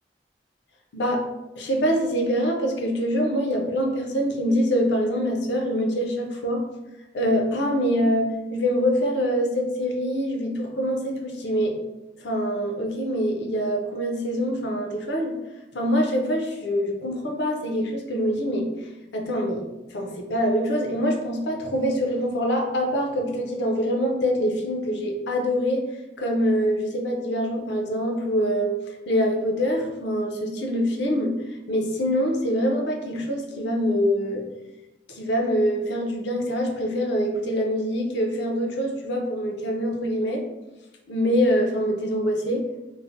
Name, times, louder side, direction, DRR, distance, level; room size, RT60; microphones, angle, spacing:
voice 1, 0.9-1.2 1.6-6.6 7.1-11.8 12.1-15.3 15.7-18.7 19.1-25.8 26.2-31.4 31.7-34.4 35.1-40.4 41.1-42.6, equal, 80° left, 1 dB, 0.5 m, -24 dB
3.1 x 2.0 x 2.5 m, 1.0 s
head